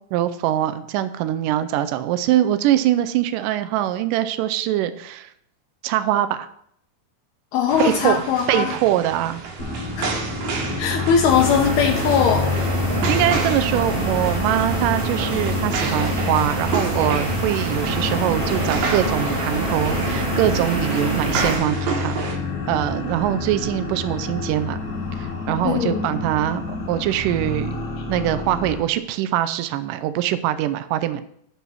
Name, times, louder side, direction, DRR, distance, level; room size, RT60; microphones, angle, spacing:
voice 1, 0.1-5.3 5.8-6.5 7.8-8.2 8.5-9.4 13.1-22.4 22.7-24.8 25.1-26.6 26.9-27.8 28.1-31.2, right 12 dB, 85° right, 11 dB, 1.9 m, -23 dB
voice 2, 7.5-8.7 10.0-10.1 10.8-12.5 25.6-26.1, left 7 dB, 85° left, -1 dB, 2.8 m, -20 dB
sound 1, 7.7-22.4, right 5 dB, 65° right, 2.5 m, -31 dB
sound 2, 9.6-28.8, left 3 dB, 70° left, 0.9 m, -30 dB
sound 3, 11.3-21.6, right 1 dB, 30° right, 0.8 m, -25 dB
11.5 x 4.1 x 6.2 m, 0.70 s
omnidirectional pair, 4.4 m